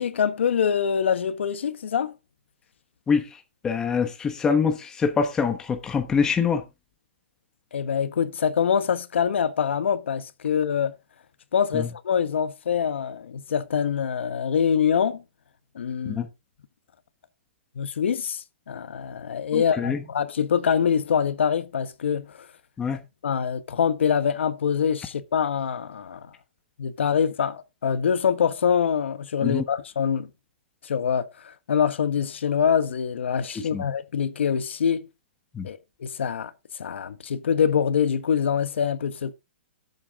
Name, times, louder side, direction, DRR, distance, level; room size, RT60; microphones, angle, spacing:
voice 1, 0.0-2.2 7.7-10.9 11.5-15.2 15.7-16.2 17.8-22.4 23.2-26.3 26.8-30.3 30.8-35.1 35.6-36.5 36.8-39.3, left 7 dB, 75° left, 1.3 m, -24 dB
voice 2, 3.6-6.6 11.7-11.8 16.0-16.3 19.5-20.0 22.8-23.0 29.4-29.6 33.7-33.8 35.5-35.7, left 6 dB, 10° left, 1.1 m, -24 dB
11.5 x 8.1 x 3.6 m
hypercardioid pair, 165°, 6 cm